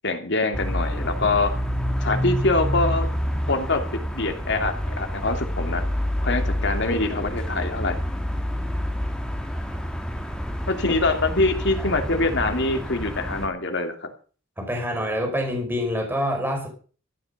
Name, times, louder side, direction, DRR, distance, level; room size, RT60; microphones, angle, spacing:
voice 1, 0.0-1.5 2.0-3.1 3.5-5.8 6.2-8.0 10.7-14.1, left 2 dB, 60° left, 6 dB, 2.9 m, -24 dB
sound 1, 0.5-13.5, equal, 5° left, 2.5 m, -28 dB
voice 2, 14.6-16.7, equal, 10° right, 1 dB, 5.1 m, -26 dB
15.0 x 9.2 x 6.6 m, 0.39 s
head